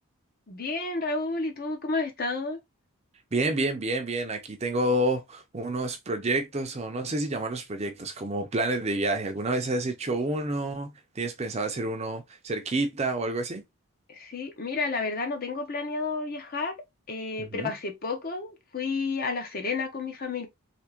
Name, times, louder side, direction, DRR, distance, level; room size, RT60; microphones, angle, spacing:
voice 1, 0.5-2.6 14.1-16.8 17.1-20.5, left 3 dB, 40° left, 0.7 m, -31 dB
voice 2, 3.3-13.6 17.4-17.7, right 2 dB, 30° right, 0.5 m, -29 dB
3.4 x 2.8 x 2.9 m
head